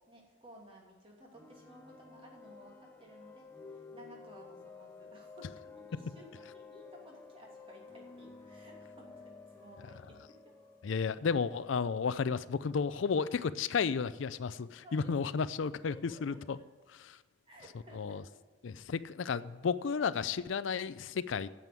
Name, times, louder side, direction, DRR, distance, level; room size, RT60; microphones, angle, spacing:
voice 1, 0.1-10.2 10.4-10.5 14.8-15.1 15.9-16.6 17.5-18.4, equal, 30° right, -1 dB, 2.7 m, -56 dB
sound 1, 1.3-13.0, left 4 dB, 10° left, 0.8 m, -53 dB
voice 2, 10.8-15.9 16.2-16.6 17.1-17.2 17.9-18.2 18.6-21.5, left 5 dB, 75° left, 16 dB, 0.4 m, -32 dB
9.1 x 7.7 x 9.1 m, 1.3 s
head